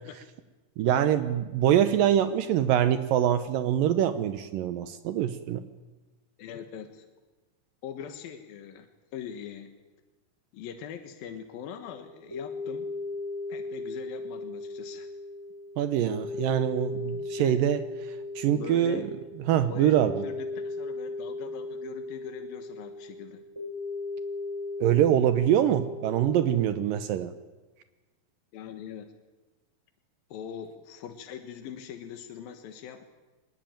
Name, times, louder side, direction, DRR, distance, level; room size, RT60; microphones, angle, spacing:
voice 1, 0.8-5.7 15.8-19.1 19.5-20.2 24.8-27.3, right 10 dB, 80° right, 11 dB, 2.6 m, -24 dB
voice 2, 6.4-7.1 7.8-8.9 9.1-9.7 10.5-12.9 13.5-15.1 17.4-17.6 18.5-19.1 19.7-19.9 20.2-23.4 28.5-29.1 30.3-33.1, left 8 dB, 80° left, 7 dB, 3.2 m, -42 dB
sound 1, 11.7-27.1, left 3 dB, 5° right, 6.8 m, -37 dB
24.0 x 21.0 x 9.1 m, 1.2 s
omnidirectional pair, 4.1 m